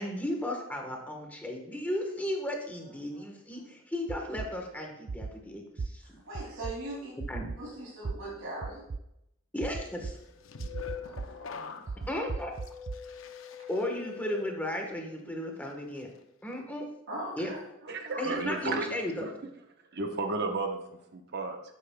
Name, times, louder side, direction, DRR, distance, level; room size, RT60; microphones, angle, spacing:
voice 1, 0.0-6.2 7.3-7.5 9.5-10.1 12.1-12.5 13.7-16.1 16.4-16.9 17.4-17.5 18.2-19.3, left 1 dB, 10° left, 1 dB, 1.3 m, -35 dB
sound 1, 4.1-4.5 5.1-5.3 5.8-5.9 6.3-6.7 7.2-7.6 8.0-8.1 8.6-9.0 9.6-10.1 10.6-11.3 11.9-13.0, right 4 dB, 35° right, 0.3 m, -35 dB
voice 2, 6.0-7.1 7.5-8.8 11.0-12.1 17.1-18.2, right 1 dB, 85° right, -5 dB, 2.8 m, -41 dB
sound 2, 10.1-15.2 15.6-16.0, left 7 dB, 70° left, 0.6 m, -44 dB
voice 3, 17.9-18.9 19.2-19.3 19.9-20.8 21.1-21.6, right 3 dB, 55° right, 4 dB, 1.0 m, -32 dB
11.5 x 9.1 x 2.3 m, 0.81 s
head